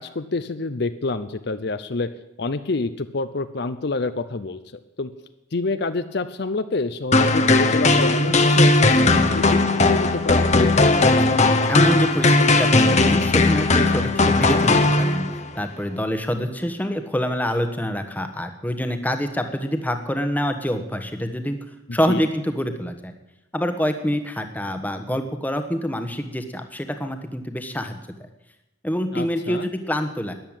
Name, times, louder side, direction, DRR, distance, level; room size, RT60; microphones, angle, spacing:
voice 1, 0.0-2.1 2.4-4.6 5.0-5.1 5.5-10.5 22.1-22.3 29.1-29.7, left 3 dB, 55° left, 11 dB, 0.6 m, -27 dB
sound 1, 7.1-15.5, left 2 dB, 35° left, 1.0 m, -17 dB
voice 2, 11.7-15.3 15.5-21.6 21.9-23.1 23.5-28.0 28.8-30.3, equal, 10° left, 7 dB, 1.2 m, -26 dB
13.5 x 10.5 x 8.9 m, 0.92 s
head